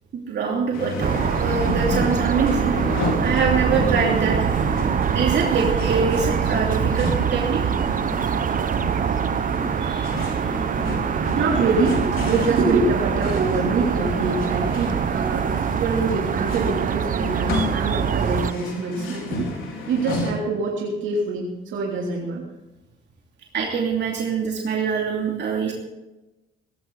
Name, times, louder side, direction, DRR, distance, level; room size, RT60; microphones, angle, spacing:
voice 1, 0.1-2.7 3.2-4.5 5.1-7.6 9.8-10.1 23.5-25.7, right 5 dB, 60° right, -1 dB, 2.8 m, -24 dB
sound 1, 0.7-20.3, left 3 dB, 90° left, 4.3 m, -31 dB
sound 2, 1.0-18.5, right 8 dB, 45° right, 0.7 m, -24 dB
voice 2, 10.9-19.5 19.9-22.4, right 3 dB, 75° right, -3 dB, 3.2 m, -25 dB
18.0 x 15.0 x 4.0 m, 1.0 s
cardioid pair, 90°, 20 cm